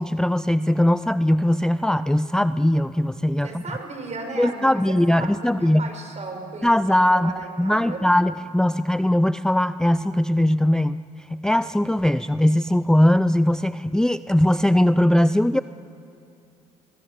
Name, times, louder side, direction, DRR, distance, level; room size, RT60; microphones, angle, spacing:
voice 1, 0.0-3.6 4.4-5.9 6.6-15.6, left 1 dB, 5° left, 14 dB, 0.5 m, -20 dB
voice 2, 3.4-8.0, right 3 dB, 40° right, 4 dB, 6.6 m, -36 dB
25.5 x 20.0 x 8.0 m, 2.6 s
supercardioid pair, 60°, 18 cm